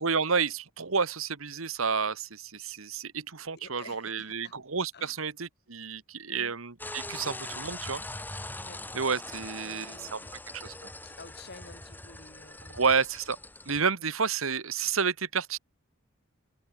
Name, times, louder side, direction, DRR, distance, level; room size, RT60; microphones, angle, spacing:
voice 1, 0.0-8.0 8.9-10.2 10.6-10.9 12.7-13.4 13.6-15.6, right 5 dB, 75° right, 1.5 m, -30 dB
voice 2, 3.5-4.6 4.9-5.2 6.3-6.5 8.6-8.8 9.6-10.3 11.0-12.9, left 3 dB, 55° left, 4.7 m, -51 dB
sound 1, 6.8-13.8, left 2 dB, 10° left, 2.0 m, -42 dB
head